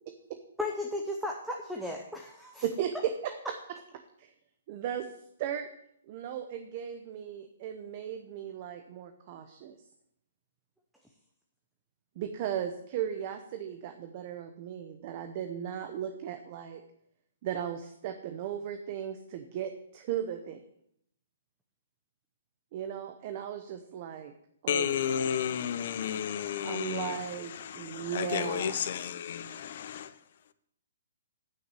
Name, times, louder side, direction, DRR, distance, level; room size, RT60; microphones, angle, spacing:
voice 1, 0.6-2.7, left 2 dB, ahead, 0 dB, 0.7 m, -35 dB
voice 2, 2.6-3.3 4.2-4.3 4.7-5.1 5.4-5.7 6.1-9.8 12.2-16.8 17.4-20.6 22.7-24.3 24.6-25.0 26.5-29.0, right 9 dB, 35° right, 7 dB, 0.8 m, -36 dB
voice 3, 24.7-27.2 27.6-30.1, left 8 dB, 50° left, 13 dB, 0.7 m, -32 dB
9.1 x 5.9 x 7.7 m, 0.74 s
hypercardioid pair, 165°, 0 cm